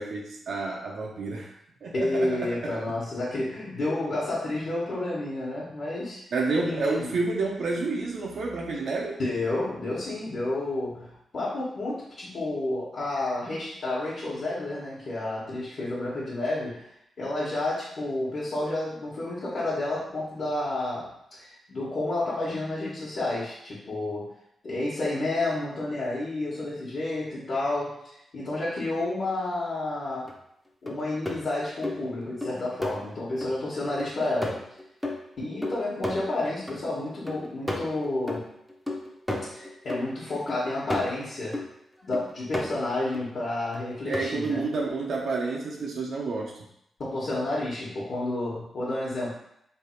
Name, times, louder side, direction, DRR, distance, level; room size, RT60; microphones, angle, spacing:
voice 1, 0.0-1.5 1.8-2.8 6.3-9.2 44.1-46.5, right 3 dB, 65° right, -2 dB, 0.5 m, -29 dB
voice 2, 1.9-6.2 6.6-7.1 9.2-16.8 17.2-24.3 24.6-30.3 30.8-34.6 35.4-38.4 39.5-41.6 42.0-44.6 47.0-49.3, left 2 dB, 50° left, -8 dB, 1.1 m, -30 dB
sound 1, 30.3-30.4 30.9-33.6 34.0-36.8 37.1-41.7 42.1-43.2 43.7-44.2 44.7-44.8, left 1 dB, 5° left, 0.6 m, -33 dB
3.3 x 2.4 x 4.3 m, 0.75 s
wide cardioid pair, 130°, 0 cm